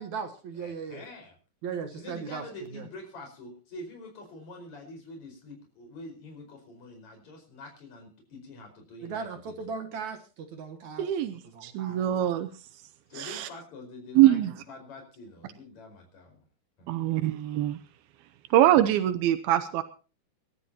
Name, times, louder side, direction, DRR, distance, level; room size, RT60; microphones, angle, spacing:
voice 1, 0.0-1.0 1.6-2.4 2.7-2.9 9.0-11.1 11.4-12.0, right 5 dB, 60° right, 6 dB, 2.3 m, -37 dB
voice 2, 0.6-1.4 1.9-9.7 13.1-14.4 14.7-16.4 16.8-17.0, left 2 dB, 50° left, 3 dB, 6.2 m, -45 dB
voice 3, 11.0-12.5 13.2-13.5 14.2-14.5 16.9-17.8 18.5-19.8, right 13 dB, 85° right, 10 dB, 2.7 m, -23 dB
26.5 x 13.0 x 2.9 m, 0.35 s
omnidirectional pair, 4.2 m